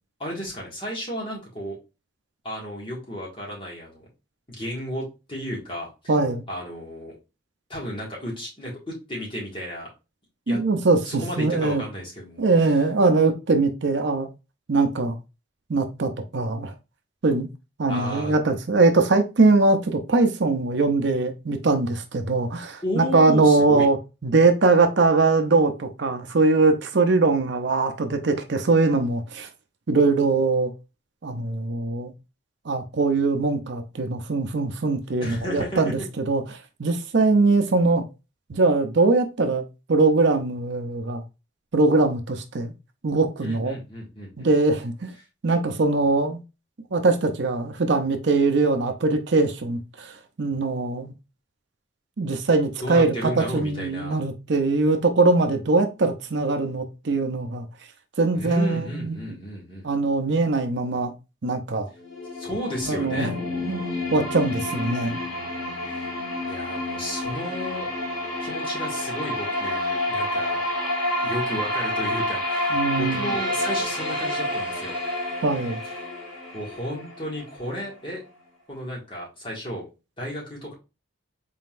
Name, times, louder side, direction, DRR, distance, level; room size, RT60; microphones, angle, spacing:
voice 1, 0.2-1.8 2.4-4.1 4.6-5.9 6.5-7.2 7.7-9.9 10.5-10.6 11.0-12.5 17.9-18.4 22.8-23.9 35.2-35.9 43.4-44.5 52.8-54.3 58.3-59.9 62.3-63.4 65.9-66.1 66.5-67.9 68.4-70.6 71.2-74.9 76.5-78.2 78.7-79.8 80.2-80.7, equal, 25° left, 1.8 m, -33 dB
voice 2, 6.1-6.4 10.5-11.8 12.4-14.3 14.7-15.2 15.7-16.7 17.2-17.5 17.8-24.0 24.2-29.5 29.9-30.7 31.2-32.1 32.7-36.4 36.8-38.0 38.5-39.6 39.9-41.2 41.7-42.7 43.0-43.8 44.4-45.1 45.4-46.4 46.9-51.1 52.2-57.7 58.2-59.2 59.8-61.1 61.4-61.9 62.9-63.3 63.6-65.2 72.7-73.3 75.4-75.8, right 3 dB, 60° right, 0.6 m, -21 dB
sound 1, 61.9-77.9, left 1 dB, 85° left, 1.9 m, -29 dB
4.1 x 3.8 x 2.5 m
head